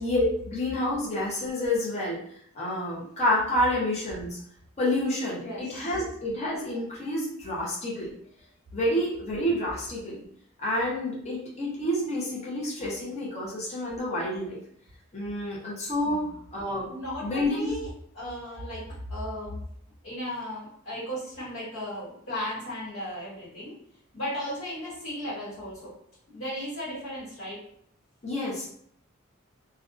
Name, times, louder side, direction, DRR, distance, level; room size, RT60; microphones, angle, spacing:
voice 1, 0.0-2.2 2.5-4.4 4.8-8.1 8.7-10.2 10.6-14.6 15.1-16.2 16.5-16.9 17.2-17.7 28.2-28.7, left 1 dB, 30° left, -6 dB, 0.6 m, -28 dB
voice 2, 5.3-5.9 16.0-16.3 16.9-17.9 18.1-18.8 19.1-19.6 20.0-23.7 24.1-25.9 26.3-27.6, equal, 65° left, -9 dB, 1.3 m, -35 dB
2.5 x 2.2 x 2.5 m, 0.66 s
head